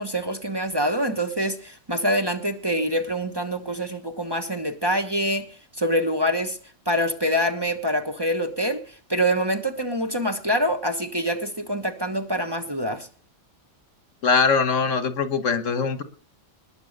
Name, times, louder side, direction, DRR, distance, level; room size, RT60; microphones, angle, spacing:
voice 1, 0.0-5.5 5.7-6.6 6.9-13.1, equal, 20° right, 1.2 m, -25 dB
voice 2, 14.2-16.0, left 5 dB, 70° left, 1.6 m, -22 dB
20.5 x 7.1 x 6.6 m
omnidirectional pair, 1.4 m